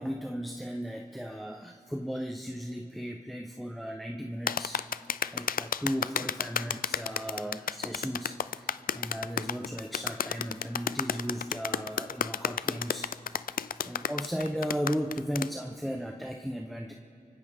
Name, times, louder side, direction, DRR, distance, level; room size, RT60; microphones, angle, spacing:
voice 1, 0.0-4.9 5.3-13.1 13.4-16.9, equal, ahead, 2 dB, 0.9 m, -36 dB
sound 1, 4.5-15.5, left 8 dB, 85° left, 0.4 m, -31 dB
29.5 x 24.5 x 3.7 m, 2.6 s
wide cardioid pair, 70°, 14 cm